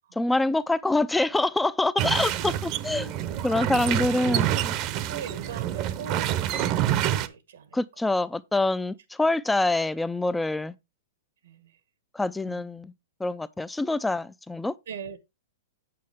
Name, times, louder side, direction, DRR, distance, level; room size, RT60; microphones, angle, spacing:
voice 1, 0.2-3.1 3.4-4.7 7.7-10.7 12.1-12.9 13.2-14.8, left 2 dB, 5° left, 0.4 m, -25 dB
sound 1, 2.0-7.3, right 11 dB, 35° right, 0.8 m, -27 dB
voice 2, 2.9-3.5 3.7-4.1 5.0-7.8 11.4-11.8 12.4-12.7 14.9-15.2, right 7 dB, 85° right, 1.6 m, -42 dB
8.6 x 7.5 x 3.5 m
hypercardioid pair, 145°, 0 cm